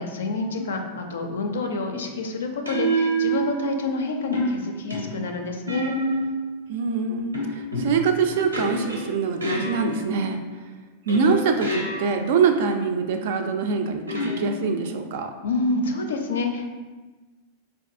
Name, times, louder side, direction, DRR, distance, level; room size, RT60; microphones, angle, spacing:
voice 1, 0.0-6.0 15.4-16.7, left 3 dB, 65° left, 4 dB, 0.4 m, -28 dB
sound 1, 0.6-0.9 2.7-3.9 4.3-6.5 7.3-10.3 11.1-12.4 14.1-15.0, right 2 dB, 80° right, 0.6 m, -29 dB
voice 2, 6.7-7.4 7.8-10.4 11.1-15.3, right 5 dB, 55° right, 6 dB, 0.3 m, -24 dB
4.5 x 2.5 x 2.5 m, 1.3 s
figure-of-eight pair, 90°, 0 cm